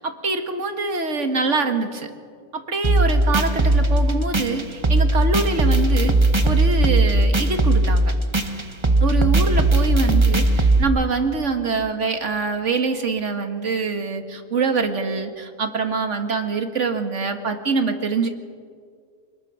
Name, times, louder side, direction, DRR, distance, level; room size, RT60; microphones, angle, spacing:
voice 1, 0.0-2.1 2.5-6.1 6.4-8.2 9.0-18.3, right 4 dB, 60° right, 6 dB, 2.0 m, -24 dB
sound 1, 2.8-10.8, right 2 dB, 20° right, 1.1 m, -18 dB
26.0 x 20.5 x 6.3 m, 2.1 s
omnidirectional pair, 1.4 m